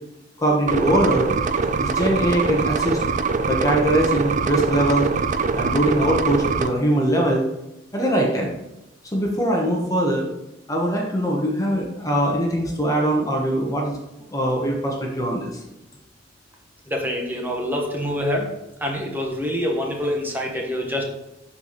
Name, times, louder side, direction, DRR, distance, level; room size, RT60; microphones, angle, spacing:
voice 1, 0.4-1.3 1.8-3.0 3.5-5.1 5.5-7.4 7.9-8.5 9.1-10.3 10.7-13.9 14.3-15.5, right 1 dB, 20° left, -1 dB, 1.1 m, -21 dB
sound 1, 0.7-6.7, right 4 dB, 40° right, 0.4 m, -23 dB
voice 2, 16.9-18.5 18.8-21.0, equal, 10° right, 0 dB, 1.2 m, -25 dB
12.5 x 4.2 x 3.1 m, 0.89 s
head